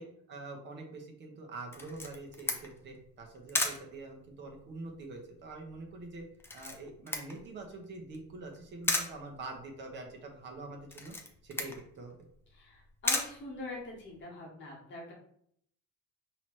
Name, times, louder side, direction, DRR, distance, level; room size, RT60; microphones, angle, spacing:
voice 1, 0.0-6.2 6.5-11.1 11.4-12.1, right 3 dB, 35° right, 2 dB, 0.9 m, -45 dB
Camera, 1.7-14.2, left 2 dB, 10° left, 0.3 m, -38 dB
voice 2, 12.5-15.1, left 2 dB, 35° left, -3 dB, 1.3 m, -44 dB
5.7 x 2.9 x 3.1 m, 0.68 s
cardioid pair, 175°, 32 cm